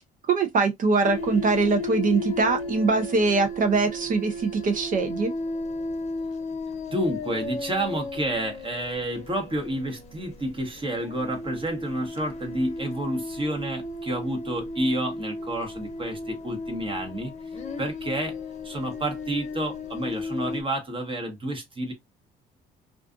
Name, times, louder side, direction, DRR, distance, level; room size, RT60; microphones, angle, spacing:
voice 1, 0.3-5.3, right 4 dB, 45° right, 0.6 m, -23 dB
sound 1, 1.0-20.6, left 2 dB, 35° left, 0.8 m, -35 dB
voice 2, 6.9-18.4 18.6-21.9, right 1 dB, 30° right, 1.0 m, -30 dB
2.4 x 2.4 x 2.4 m
supercardioid pair, 80°, 19 cm